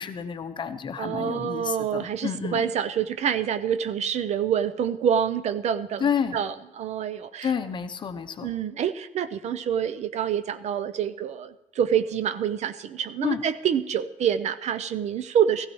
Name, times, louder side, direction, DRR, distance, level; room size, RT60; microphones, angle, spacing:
voice 1, 0.0-2.6 6.0-6.4 7.4-8.5 13.2-13.4, left 7 dB, 35° left, 9 dB, 0.7 m, -29 dB
voice 2, 1.0-7.5 8.4-15.7, right 8 dB, 55° right, 13 dB, 0.5 m, -27 dB
16.0 x 15.5 x 3.1 m, 0.89 s
cardioid pair, 175°, 14 cm